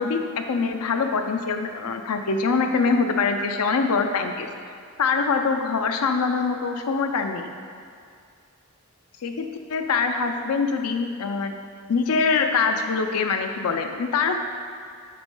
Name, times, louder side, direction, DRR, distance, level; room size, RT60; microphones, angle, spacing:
voice 1, 0.0-4.5 5.0-7.5 9.2-11.5 11.9-14.4, left 4 dB, 85° left, 5 dB, 0.5 m, -24 dB
8.5 x 3.1 x 5.4 m, 2.2 s
head